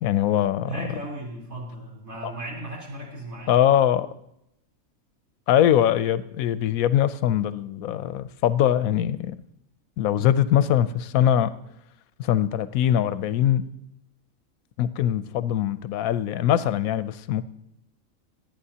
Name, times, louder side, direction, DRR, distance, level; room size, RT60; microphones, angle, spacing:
voice 1, 0.0-0.7 2.2-2.3 3.5-4.1 5.5-9.4 10.0-11.5 12.2-13.6 14.8-17.4, left 10 dB, 85° left, 14 dB, 1.0 m, -22 dB
voice 2, 0.7-3.5, right 1 dB, 80° right, -4 dB, 4.2 m, -36 dB
25.0 x 9.1 x 2.8 m, 0.80 s
omnidirectional pair, 1.4 m